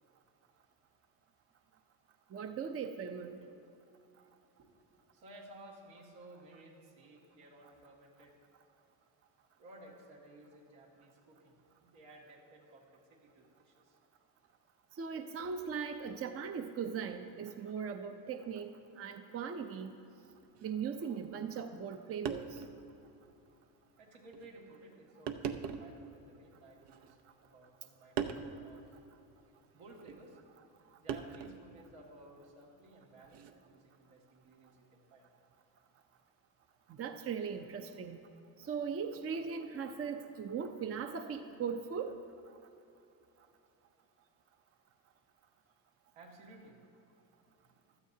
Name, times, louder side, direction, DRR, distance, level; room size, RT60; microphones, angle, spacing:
voice 1, 2.3-3.4 14.9-19.9 20.6-22.6 36.9-38.2 38.6-42.1, right 6 dB, 30° right, 7 dB, 0.6 m, -39 dB
voice 2, 5.1-8.4 9.6-14.0 24.0-27.2 27.4-29.0 29.7-30.4 31.0-35.3 37.1-37.2 46.1-46.8 47.7-47.8, right 1 dB, 80° right, -3 dB, 2.5 m, -56 dB
sound 1, 20.5-20.7 21.8-21.9 22.3-22.8 23.3-23.4 24.3-24.5 25.3-26.0 26.8-27.5 28.2-28.5 30.1-30.2 31.1-31.7 33.2-33.5, right 7 dB, 65° right, 0.8 m, -39 dB
15.5 x 12.5 x 2.8 m, 2.8 s
supercardioid pair, 95°, 44 cm